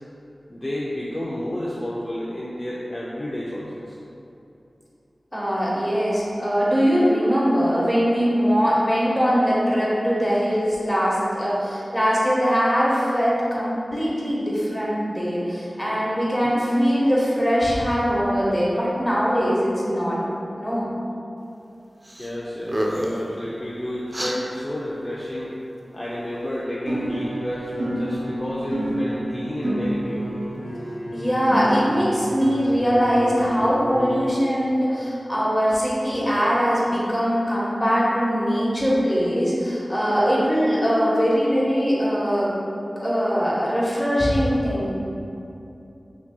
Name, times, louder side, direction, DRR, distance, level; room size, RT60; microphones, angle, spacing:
voice 1, 0.5-4.0 16.4-16.6 22.2-25.5 25.9-30.3, left 1 dB, 30° left, -7 dB, 0.6 m, -31 dB
voice 2, 5.3-20.2 20.6-20.9 31.1-42.5 43.0-44.9, equal, 10° left, -7 dB, 1.3 m, -21 dB
sound 1, 22.0-22.3 22.6-23.2 24.1-24.4, equal, 30° right, 0.4 m, -27 dB
sound 2, 26.9-34.3, right 1 dB, 70° right, 1.1 m, -29 dB
5.9 x 2.9 x 2.3 m, 2.8 s
cardioid pair, 40°, 0 cm